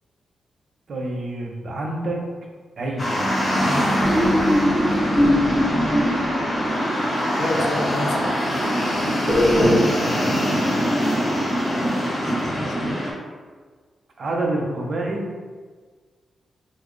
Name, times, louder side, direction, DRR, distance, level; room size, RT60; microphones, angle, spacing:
voice 1, 0.9-2.2 2.8-3.2 9.6-10.7 14.2-15.5, right 2 dB, 50° right, 0 dB, 0.6 m, -28 dB
sound 1, 3.0-13.1, equal, 35° left, 0.8 m, -23 dB
sound 2, 4.0-7.2 9.3-9.8, left 1 dB, 10° right, 0.6 m, -21 dB
voice 2, 7.4-8.2 12.0-13.0, left 1 dB, 60° left, 2 dB, 0.4 m, -30 dB
3.7 x 2.0 x 3.1 m, 1.5 s
wide cardioid pair, 115°, 0 cm